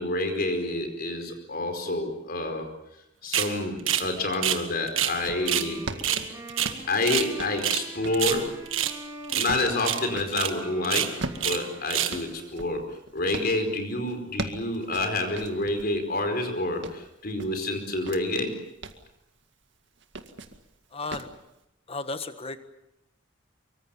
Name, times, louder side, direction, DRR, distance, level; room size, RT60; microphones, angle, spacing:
voice 1, 0.0-2.7 3.2-5.8 6.9-8.6 9.3-12.8 13.1-18.5, left 2 dB, 50° left, 6 dB, 4.8 m, -28 dB
sound 1, 3.3-3.5 3.9-4.1 4.3-5.2 5.5-5.7 6.0-7.3 7.6-7.9 8.1-9.0 9.3-9.5 9.8-10.0 10.3-10.5 10.8-11.6 11.9-12.2, right 11 dB, 85° right, 1.7 m, -27 dB
sound 2, 4.0-4.2 4.8-10.4 11.0-13.5 14.1-15.9 16.4-18.2 18.6-19.1 20.0-20.6 21.1-21.4, right 2 dB, 65° right, 2.0 m, -39 dB
Wind instrument woodwind instrument, 4.9-12.6, right 1 dB, 15° right, 4.4 m, -44 dB
voice 2, 20.9-21.3 21.9-22.6, left 3 dB, 30° left, 10 dB, 1.5 m, -34 dB
24.5 x 24.0 x 7.2 m, 0.86 s
head